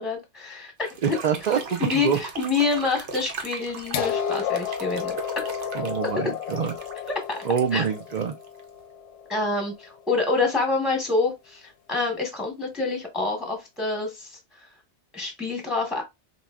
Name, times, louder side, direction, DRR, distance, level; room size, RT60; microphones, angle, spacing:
voice 1, 0.0-0.9 1.8-5.1 7.3-7.4 7.7-7.8 9.3-14.7 15.1-16.0, left 3 dB, ahead, 0.9 m, -27 dB
sound 1, 0.8-8.8, right 5 dB, 85° right, 1.1 m, -39 dB
voice 2, 1.0-2.2 5.7-6.7 7.4-8.3, right 7 dB, 55° right, 0.4 m, -25 dB
sound 2, 3.9-9.8 10.9-11.0, left 8 dB, 90° left, 0.9 m, -32 dB
4.1 x 3.0 x 2.3 m
omnidirectional pair, 1.2 m